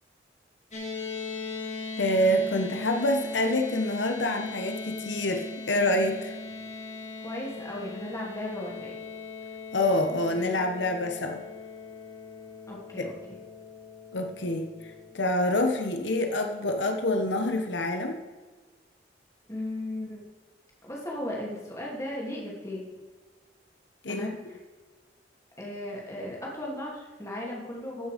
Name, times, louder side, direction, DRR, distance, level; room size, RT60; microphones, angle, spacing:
sound 1, 0.7-15.1, left 3 dB, 40° left, 2.7 m, -39 dB
voice 1, 2.0-6.3 9.7-11.5 13.0-13.1 14.1-14.7 15.1-18.2 24.0-24.3, left 1 dB, 85° left, 5 dB, 1.1 m, -26 dB
voice 2, 7.2-9.0 12.7-13.4 19.5-20.2 20.8-22.9 24.1-24.3 25.6-28.1, left 1 dB, 15° left, -3 dB, 2.7 m, -36 dB
15.0 x 6.3 x 5.1 m, 1.4 s
head